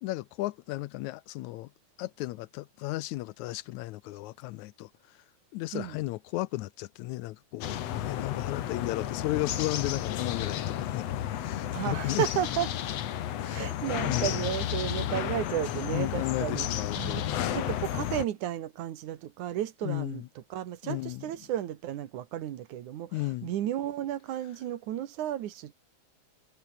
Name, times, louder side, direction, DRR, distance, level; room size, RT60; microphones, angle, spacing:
voice 1, 0.0-1.7 2.0-4.9 5.5-11.1 11.4-12.2 13.4-13.7 14.0-14.3 15.0-15.1 15.9-17.6 19.8-20.2 20.8-21.3 23.1-23.5, left 18 dB, 80° left, 1.9 m, -34 dB
sound 1, 7.6-18.3, left 11 dB, 60° left, 2.2 m, -32 dB
voice 2, 11.7-12.7 13.5-25.7, right 12 dB, 80° right, 2.8 m, -33 dB
omnidirectional pair, 3.5 m